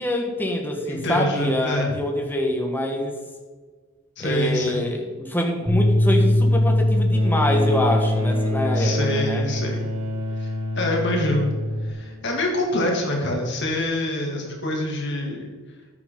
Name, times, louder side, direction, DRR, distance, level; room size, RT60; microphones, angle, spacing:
voice 1, 0.0-3.1 4.2-9.5, left 1 dB, 10° left, 2 dB, 1.5 m, -25 dB
voice 2, 0.9-2.0 4.2-4.9 8.7-9.8 10.4-10.5 10.7-11.5 11.8-15.5, left 1 dB, 55° left, 0 dB, 2.7 m, -25 dB
sound 1, 5.7-11.9, left 1 dB, 10° right, 2.5 m, -22 dB
Bowed string instrument, 7.1-12.6 13.7-13.8, left 1 dB, 75° right, 3.5 m, -32 dB
13.0 x 9.4 x 3.9 m, 1.4 s
head